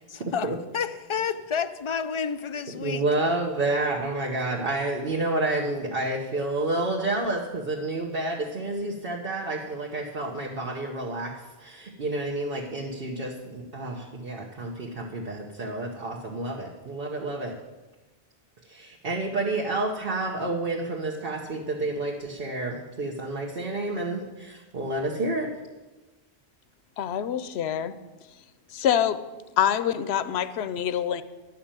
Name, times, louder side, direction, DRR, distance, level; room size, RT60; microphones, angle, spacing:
voice 1, 0.1-3.0, left 6 dB, 40° left, 0.5 m, -30 dB
voice 2, 2.8-11.3 11.6-17.5 18.6-25.5, right 2 dB, 65° right, 1.3 m, -29 dB
voice 3, 27.0-27.9 28.7-29.2 29.6-31.2, left 9 dB, 85° left, 0.9 m, -25 dB
11.5 x 6.0 x 8.8 m
omnidirectional pair, 1.1 m